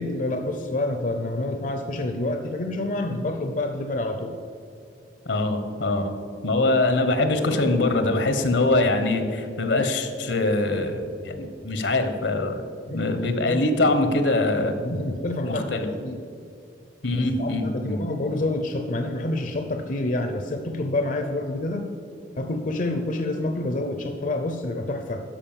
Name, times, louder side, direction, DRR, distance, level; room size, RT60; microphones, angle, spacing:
voice 1, 0.0-4.4 12.9-14.0 14.5-16.2 17.4-21.9 22.4-25.2, left 2 dB, 45° left, 6 dB, 0.6 m, -28 dB
voice 2, 5.3-6.1 6.4-12.6 12.9-14.7 15.4-15.9 17.0-18.0, left 2 dB, 80° left, 8 dB, 1.1 m, -23 dB
12.0 x 5.1 x 7.3 m, 2.4 s
head